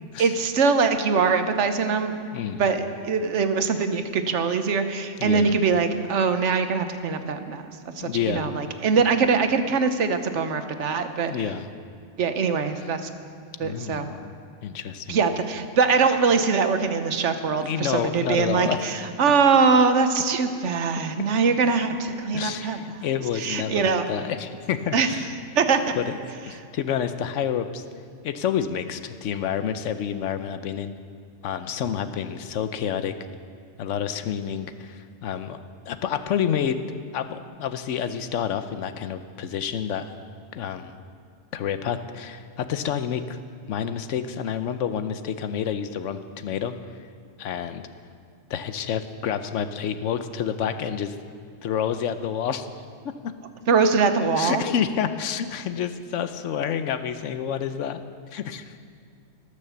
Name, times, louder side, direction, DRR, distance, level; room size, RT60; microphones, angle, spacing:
voice 1, 0.2-2.1 2.6-7.6 8.0-11.3 12.2-13.1 13.6-14.1 15.1-22.9 23.3-24.1 24.9-25.1 25.6-26.0 53.7-54.6, right 5 dB, 70° right, 8 dB, 1.2 m, -22 dB
voice 2, 2.3-2.7 5.2-5.5 8.0-8.5 11.3-11.7 13.6-14.3 14.6-15.2 17.6-18.8 22.3-25.3 26.0-26.1 26.5-27.8 28.2-30.9 31.4-33.1 33.8-35.6 35.9-36.8 37.1-40.1 40.5-41.0 41.5-43.4 43.7-46.7 47.4-47.8 48.5-51.2 51.6-52.7 53.0-53.3 54.4-58.0 58.3-58.8, left 8 dB, 80° left, 10 dB, 1.0 m, -29 dB
18.5 x 6.7 x 6.9 m, 2.3 s
omnidirectional pair, 1.3 m